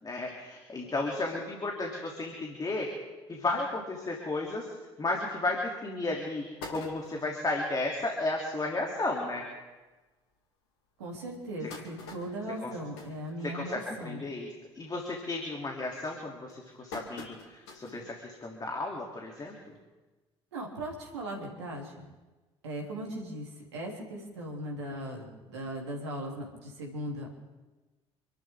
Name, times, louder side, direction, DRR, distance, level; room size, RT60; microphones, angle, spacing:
voice 1, 0.0-2.9 3.3-4.7 5.0-6.4 6.7-9.4 12.6-12.7 13.4-14.5 14.7-19.7, left 2 dB, 25° left, -1 dB, 3.2 m, -33 dB
sound 1, 5.5-5.6 6.0-6.1 6.4-7.4 8.0-8.1 8.4-8.5 8.8-9.0 9.7-9.8 10.3-10.4 11.1-14.0 14.3-14.7 15.0-15.4 16.0-18.1 18.5-18.6 19.8-19.9, left 3 dB, 70° left, 2.7 m, -46 dB
voice 2, 11.0-14.2 20.5-22.0 22.6-27.3, right 1 dB, 75° right, 0 dB, 3.1 m, -38 dB
28.0 x 13.0 x 3.8 m, 1.2 s
figure-of-eight pair, 50°, 14 cm